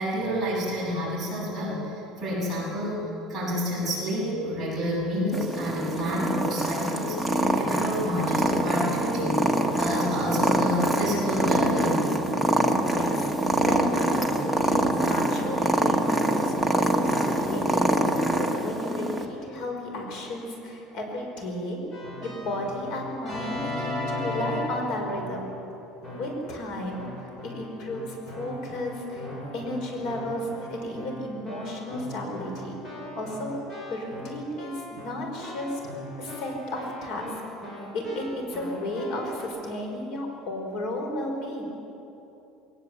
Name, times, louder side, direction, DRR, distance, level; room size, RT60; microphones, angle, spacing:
voice 1, 0.0-12.2, equal, 10° right, -8 dB, 7.7 m, -29 dB
Purr, 5.3-19.2, right 1 dB, 5° left, 1.3 m, -25 dB
voice 2, 12.6-13.3 13.7-21.8 22.2-25.5 26.1-32.8 33.2-33.6 33.9-35.8 36.2-37.4 37.9-41.6, left 1 dB, 50° left, 2 dB, 5.5 m, -33 dB
Keyboard (musical), 21.9-25.6 26.0-26.5 26.9-39.4, left 1 dB, 30° left, 7.2 m, -38 dB
21.5 x 19.5 x 8.3 m, 2.9 s
cardioid pair, 170°, 0 cm